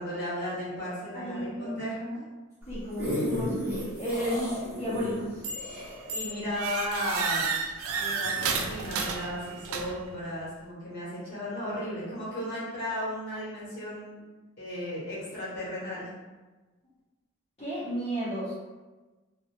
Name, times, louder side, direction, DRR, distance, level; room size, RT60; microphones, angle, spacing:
voice 1, 0.0-2.0 6.1-7.5 8.0-14.2 14.6-16.1, equal, 50° left, -9 dB, 1.1 m, -35 dB
voice 2, 1.1-2.2 2.7-5.4 17.6-18.5, equal, 30° left, -13 dB, 0.8 m, -33 dB
sound 1, 2.6-7.3 7.8-7.9, equal, 10° right, 0.7 m, -34 dB
sound 2, 5.4-5.8 6.1-10.1, right 5 dB, 80° right, 0.3 m, -32 dB
2.4 x 2.0 x 2.9 m, 1.2 s
head